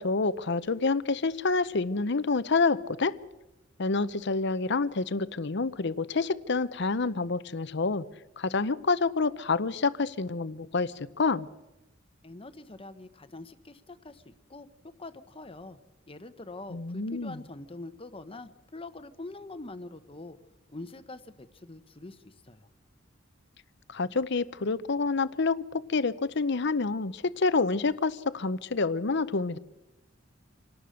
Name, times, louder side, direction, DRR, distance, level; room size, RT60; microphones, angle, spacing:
voice 1, 0.0-3.1 3.8-8.0 8.4-11.5 16.7-17.4 23.9-29.6, left 4 dB, 60° left, 15 dB, 0.8 m, -28 dB
voice 2, 12.2-14.7 15.0-15.8 16.1-20.4 20.7-22.7, left 2 dB, 30° left, 10 dB, 1.0 m, -44 dB
26.5 x 18.0 x 6.5 m, 1.0 s
head